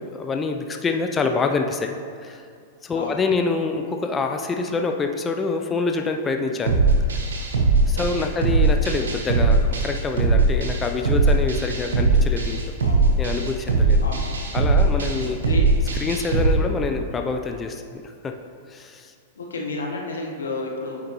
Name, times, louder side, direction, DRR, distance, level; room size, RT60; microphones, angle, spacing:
voice 1, 0.0-2.4 2.8-6.8 7.1-7.2 7.9-12.6 13.2-14.0 14.5-15.4 15.9-18.3 18.7-19.1, left 4 dB, 20° left, 5 dB, 0.4 m, -26 dB
sound 1, 6.7-16.5, right 3 dB, 85° right, 1.0 m, -20 dB
voice 2, 8.0-8.3 12.8-13.1 14.0-14.3 15.2-15.7 19.4-21.1, left 2 dB, 85° left, 0 dB, 1.1 m, -31 dB
8.4 x 5.0 x 3.0 m, 2.3 s
hypercardioid pair, 115°, 0 cm